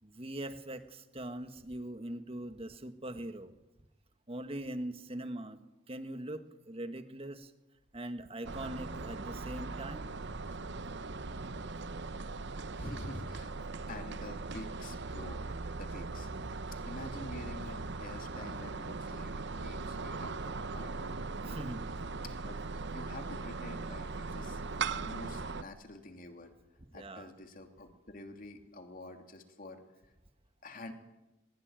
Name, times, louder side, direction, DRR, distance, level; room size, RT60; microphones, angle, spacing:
voice 1, 0.0-3.5 4.3-5.6 5.9-7.5 7.9-10.1 21.5-21.9 26.9-27.3, right 1 dB, 30° right, 9 dB, 1.6 m, -41 dB
sound 1, 8.4-25.6, right 3 dB, 60° right, 0.9 m, -39 dB
voice 2, 12.8-15.4 15.7-16.3 16.8-21.2 22.3-22.6 22.9-24.6 24.9-26.5 26.9-30.1 30.6-30.9, left 1 dB, 45° left, 5 dB, 2.9 m, -47 dB
21.5 x 21.0 x 9.1 m, 1.0 s
head